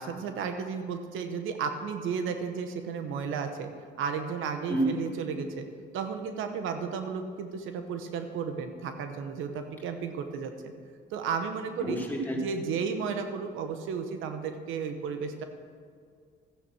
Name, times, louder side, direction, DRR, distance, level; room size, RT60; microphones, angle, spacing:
voice 1, 0.0-3.7 4.0-5.6 5.9-10.7 11.1-12.0 12.3-15.4, right 6 dB, 90° right, 7 dB, 1.1 m, -33 dB
voice 2, 11.8-12.4, right 1 dB, 10° left, -3 dB, 3.2 m, -28 dB
13.5 x 9.3 x 6.1 m, 2.1 s
cardioid pair, 90°, 20 cm